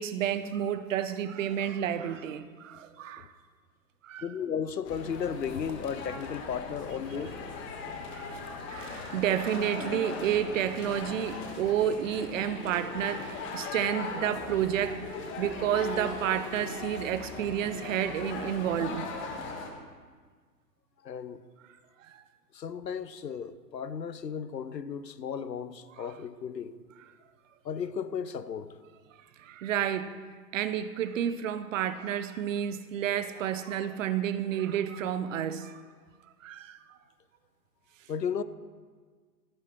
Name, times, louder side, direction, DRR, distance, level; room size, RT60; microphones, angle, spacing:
voice 1, 0.0-3.3 4.0-4.3 8.1-15.0 15.4-19.1 22.1-22.2 26.0-26.1 29.4-30.2 30.5-35.8 36.4-36.8, right 10 dB, 50° right, 0.8 m, -30 dB
voice 2, 4.2-7.3 8.3-8.4 21.0-21.4 22.5-26.7 27.6-28.7 38.1-38.4, left 7 dB, 85° left, 0.8 m, -35 dB
sound 1, 4.8-19.7, left 4 dB, 25° left, 1.4 m, -39 dB
15.5 x 10.0 x 3.1 m
figure-of-eight pair, 115°, 49 cm